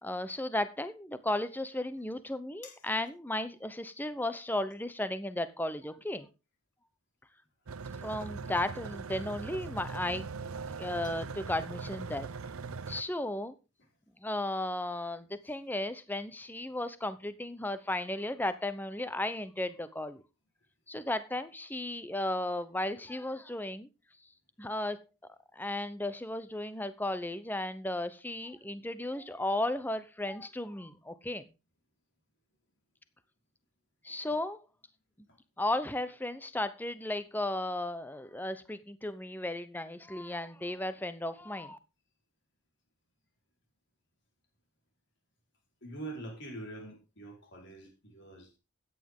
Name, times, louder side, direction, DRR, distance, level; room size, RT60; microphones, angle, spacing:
voice 1, 0.0-6.3 8.0-12.3 12.9-13.5 14.2-20.2 20.9-23.9 24.6-25.0 25.6-31.4 34.0-34.6 35.6-41.8, left 1 dB, 10° left, 0.8 m, -35 dB
sound 1, 7.7-13.0, right 4 dB, 80° right, 0.7 m, -40 dB
voice 2, 45.8-48.6, right 2 dB, 55° left, 4.5 m, -44 dB
13.5 x 9.6 x 3.7 m
head